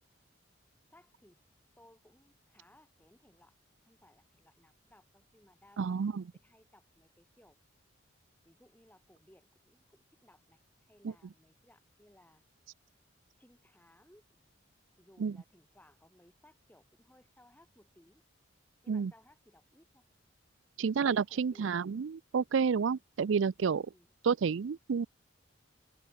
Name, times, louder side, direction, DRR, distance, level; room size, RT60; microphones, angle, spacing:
voice 1, 0.9-1.4 1.8-3.5 3.8-7.6 8.4-12.4 13.4-14.2 15.0-18.2 18.8-20.0 20.8-21.7 23.9-24.1, left 1 dB, 10° left, 5.7 m, -63 dB
voice 2, 5.8-6.2 15.2-15.3 18.9-19.1 20.8-23.9 24.2-25.1, right 6 dB, 70° right, 0.4 m, -30 dB
head